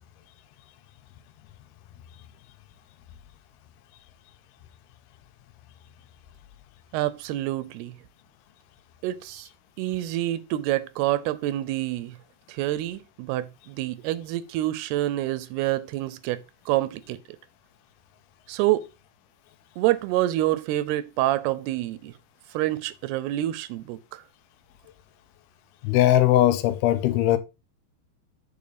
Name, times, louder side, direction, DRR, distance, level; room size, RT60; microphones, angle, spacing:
voice 1, 6.9-8.0 9.0-9.5 9.8-12.2 12.5-17.2 18.5-18.8 19.8-22.1 22.5-24.0, right 15 dB, 85° right, 2.6 m, -27 dB
voice 2, 25.8-27.4, left 13 dB, 80° left, 2.6 m, -19 dB
8.4 x 5.2 x 4.0 m
omnidirectional pair, 4.6 m